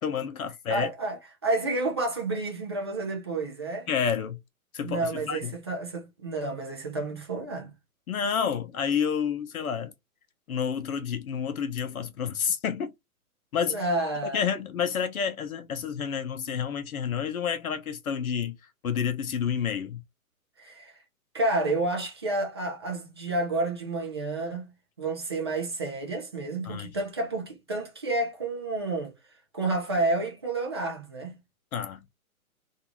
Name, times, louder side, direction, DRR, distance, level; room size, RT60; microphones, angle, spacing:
voice 1, 0.0-0.9 3.9-4.4 4.7-5.5 8.1-9.9 10.5-12.9 13.5-13.9 14.3-18.6 18.8-20.0 26.6-26.9 31.7-32.0, left 7 dB, 75° left, 0.7 m, -29 dB
voice 2, 0.7-3.9 4.8-7.7 13.7-14.4 20.6-21.0 21.3-24.7 25.0-29.1 29.5-31.4, right 2 dB, 20° right, 0.3 m, -30 dB
2.6 x 2.3 x 2.9 m
hypercardioid pair, 135°, 44 cm